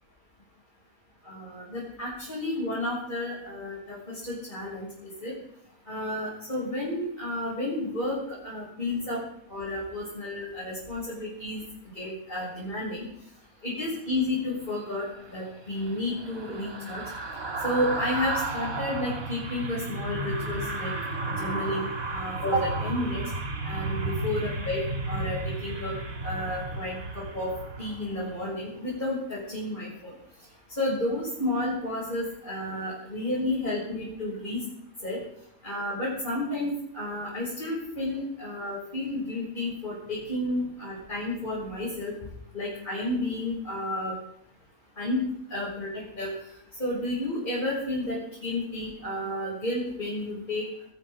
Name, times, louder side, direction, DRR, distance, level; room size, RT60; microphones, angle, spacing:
voice 1, 1.3-4.9 5.2-5.3 5.9-9.2 9.5-11.6 12.0-13.1 13.6-17.0 17.6-20.9 21.3-23.2 23.6-25.9 26.2-27.5 27.8-30.1 30.8-34.6 35.0-35.2 35.6-42.1 42.5-44.1 45.0-45.2 45.5-46.3 46.8-50.7, left 1 dB, 35° left, -6 dB, 6.9 m, -31 dB
sound 1, 15.1-28.5 28.8-29.0, right 2 dB, 70° right, 2.6 m, -33 dB
21.0 x 15.5 x 3.8 m, 0.71 s
omnidirectional pair, 1.5 m